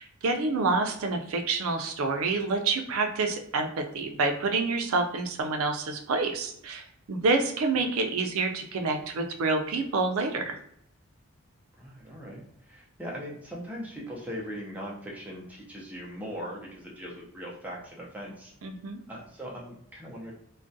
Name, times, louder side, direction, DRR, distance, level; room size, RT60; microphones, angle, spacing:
voice 1, 0.0-10.5 18.6-19.0, right 3 dB, 80° right, 4 dB, 0.4 m, -28 dB
voice 2, 11.8-18.5 19.1-20.3, equal, 5° right, -4 dB, 0.5 m, -40 dB
2.4 x 2.1 x 2.6 m, 0.73 s
head